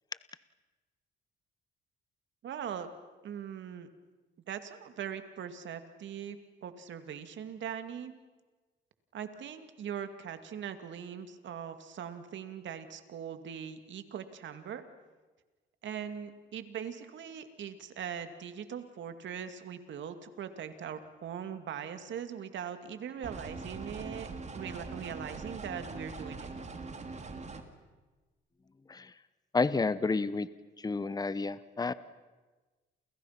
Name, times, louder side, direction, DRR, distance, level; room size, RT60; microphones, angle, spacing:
voice 1, 2.4-2.9 3.2-3.9 4.5-8.1 9.1-14.8 15.8-24.3 24.5-26.5, right 8 dB, 70° right, 9 dB, 2.4 m, -41 dB
sound 1, 23.2-27.6, right 3 dB, 35° right, 2.9 m, -42 dB
voice 2, 29.5-30.5 30.8-31.9, left 4 dB, 20° left, 15 dB, 0.9 m, -30 dB
29.5 x 29.0 x 5.9 m, 1.3 s
cardioid pair, 90°, 20 cm